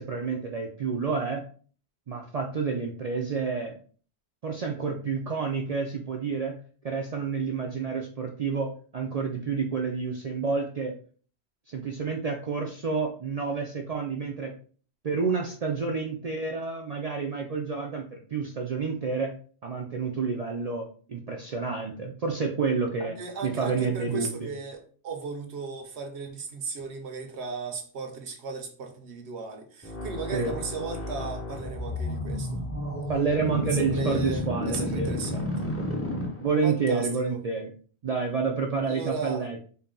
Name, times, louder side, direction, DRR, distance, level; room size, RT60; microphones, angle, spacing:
voice 1, 0.0-1.4 2.1-3.7 4.4-6.6 6.8-11.0 11.7-14.5 15.0-19.4 19.6-23.1 23.4-24.5 30.3-30.6 33.1-35.1 36.4-37.7 38.0-39.7, right 5 dB, 55° right, 0.4 m, -29 dB
voice 2, 23.0-32.6 33.6-35.7 36.6-37.4 38.9-39.5, right 4 dB, 75° right, 1.1 m, -36 dB
sound 1, 29.8-36.8, left 1 dB, 15° left, 0.6 m, -32 dB
4.1 x 2.2 x 3.7 m
omnidirectional pair, 1.1 m